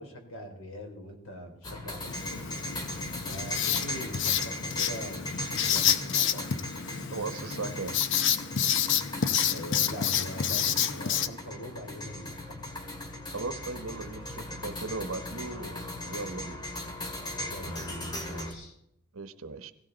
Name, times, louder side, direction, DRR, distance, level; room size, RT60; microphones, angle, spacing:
voice 1, 0.0-2.5 3.2-6.5 9.5-12.9 17.4-18.8, equal, 80° left, 3 dB, 3.8 m, -43 dB
sound 1, 1.6-18.5, left 1 dB, 20° left, 2.1 m, -38 dB
Writing, 2.1-11.3, left 9 dB, 55° left, 0.7 m, -29 dB
voice 2, 7.1-8.0 13.3-16.7 19.1-19.7, right 3 dB, 75° right, 10 dB, 1.1 m, -37 dB
17.5 x 17.0 x 4.0 m, 0.78 s
head